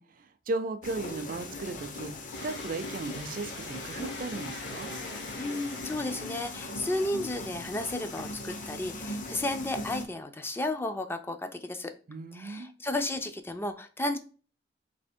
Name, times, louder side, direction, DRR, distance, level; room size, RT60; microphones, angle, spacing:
voice 1, 0.0-2.1 2.4-4.9 12.1-12.7, right 2 dB, 50° right, 0.4 m, -36 dB
sound 1, 0.8-10.1, left 2 dB, 45° left, 0.7 m, -39 dB
sound 2, 2.3-7.5, left 2 dB, 70° left, 1.1 m, -45 dB
voice 2, 5.4-11.9 12.3-14.2, left 1 dB, 15° left, 0.4 m, -33 dB
3.4 x 2.9 x 4.3 m
head